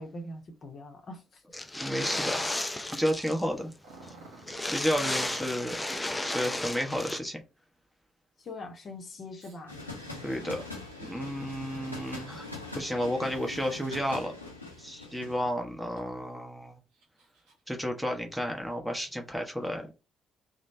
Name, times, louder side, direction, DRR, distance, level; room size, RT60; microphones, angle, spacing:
voice 1, 0.0-1.4 8.4-9.8, left 2 dB, 45° left, 0.8 m, -42 dB
sound 1, 1.5-3.5 3.7-3.8 4.1-4.2 4.4-7.2, left 1 dB, 10° left, 0.4 m, -33 dB
voice 2, 1.8-2.5 2.9-3.7 4.6-5.8 6.2-7.4 10.2-10.6 11.0-12.5 12.7-14.3 14.8-16.8 17.7-19.9, equal, 5° right, 0.9 m, -32 dB
Growling, 3.8-5.5 6.2-6.8 9.4-14.2 14.6-15.4 16.0-16.1 16.7-17.8, right 3 dB, 65° right, 1.0 m, -54 dB
sound 2, 9.7-15.5, left 2 dB, 90° left, 0.6 m, -42 dB
3.1 x 2.1 x 4.0 m
figure-of-eight pair, 45°, 0 cm